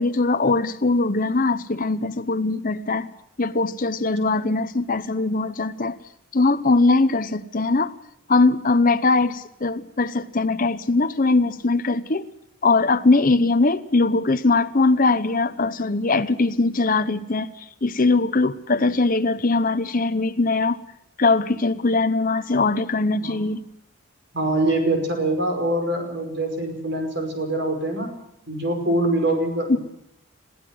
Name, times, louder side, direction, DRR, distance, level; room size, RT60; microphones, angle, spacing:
voice 1, 0.0-3.1 3.4-6.0 6.3-7.9 8.3-12.2 12.6-20.8 21.2-23.6 29.7-29.8, left 3 dB, 40° left, 9 dB, 0.8 m, -21 dB
voice 2, 24.3-28.1 28.5-29.8, right 1 dB, 50° right, 4 dB, 5.4 m, -24 dB
22.0 x 15.5 x 7.8 m, 0.78 s
head